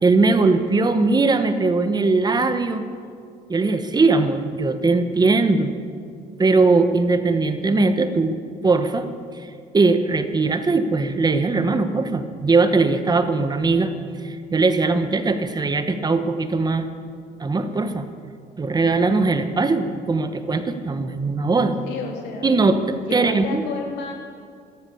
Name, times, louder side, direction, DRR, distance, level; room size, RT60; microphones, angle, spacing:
voice 1, 0.0-2.8 3.5-5.7 6.4-8.4 8.6-9.1 9.7-13.9 14.2-16.9 17.4-18.1 18.6-21.8 22.4-23.6, right 3 dB, 25° right, 9 dB, 1.1 m, -20 dB
voice 2, 21.8-22.5 23.0-24.1, left 4 dB, 90° left, 1 dB, 3.0 m, -31 dB
14.0 x 13.5 x 7.0 m, 2.2 s
cardioid pair, 110°, 17 cm